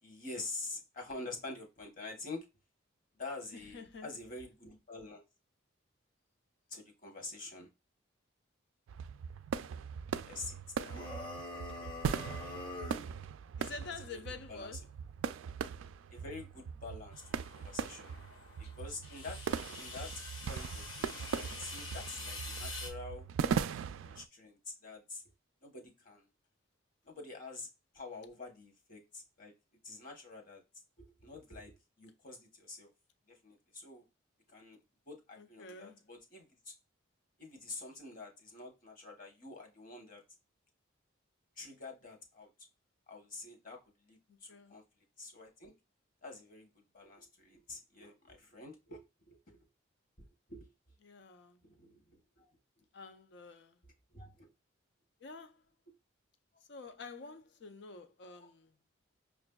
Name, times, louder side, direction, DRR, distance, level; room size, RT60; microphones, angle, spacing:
voice 1, 0.0-2.5 3.2-5.2 6.7-7.7 10.3-10.5 10.8-11.2 12.4-12.6 14.1-14.2 14.5-14.7 16.1-17.2 17.5-18.2 18.6-19.4 19.7-20.1 20.4-23.3 24.0-25.2 25.6-26.3 27.0-27.7 27.9-29.5 29.8-30.6 31.0-32.9 33.3-34.0 34.5-34.8 35.1-36.7 37.4-40.2 41.6-42.5 43.1-43.8 44.0-44.8 45.2-45.7 46.2-49.7 50.2-50.7 51.6-52.5 54.1-54.5 58.4-58.5, left 3 dB, 40° left, 1.0 m, -47 dB
voice 2, 3.5-4.1 11.3-11.5 11.8-12.1 13.6-14.8 22.9-23.0 35.4-36.0 44.3-44.8 51.0-51.6 52.9-53.8 55.2-55.6 56.7-58.8, left 4 dB, 60° left, 0.5 m, -49 dB
sound 1, 8.9-24.2, right 7 dB, 80° right, 0.3 m, -39 dB
sound 2, 10.9-13.1, left 2 dB, 25° left, 0.7 m, -44 dB
sound 3, 17.1-22.9, left 3 dB, 90° left, 1.4 m, -47 dB
5.9 x 2.4 x 2.2 m
head